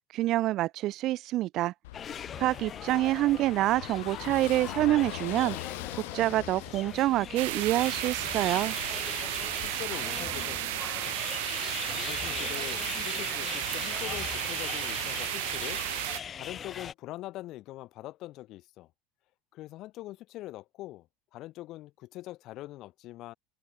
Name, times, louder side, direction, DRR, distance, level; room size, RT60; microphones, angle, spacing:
voice 1, 0.1-1.7 2.4-5.6 6.1-8.8, right 16 dB, 40° right, 0.8 m, -27 dB
Car passing by / Engine, 1.8-9.7, left 19 dB, 85° left, 1.6 m, -43 dB
sound 1, 1.9-16.9, left 8 dB, 20° left, 1.9 m, -40 dB
voice 2, 2.7-3.2 9.6-10.6 11.9-15.8 16.4-18.9 19.5-23.3, left 16 dB, 40° left, 2.3 m, -43 dB
sound 2, 7.4-16.2, right 22 dB, 75° right, 1.3 m, -33 dB
cardioid pair, 170°, 0 cm